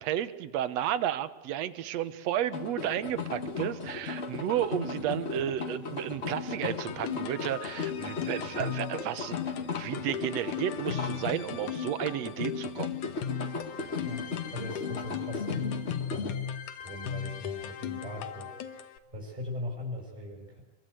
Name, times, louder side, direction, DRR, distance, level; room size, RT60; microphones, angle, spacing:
voice 1, 0.0-9.4 9.7-13.0, right 11 dB, 65° right, 14 dB, 2.1 m, -32 dB
sound 1, 2.5-16.3, left 4 dB, 35° left, 1.1 m, -36 dB
sound 2, 6.7-19.0, left 9 dB, 80° left, 2.7 m, -38 dB
voice 2, 14.0-15.8 16.1-16.4 16.8-20.6, left 1 dB, 15° right, -1 dB, 6.0 m, -40 dB
25.5 x 23.0 x 8.1 m, 1.1 s
omnidirectional pair, 3.5 m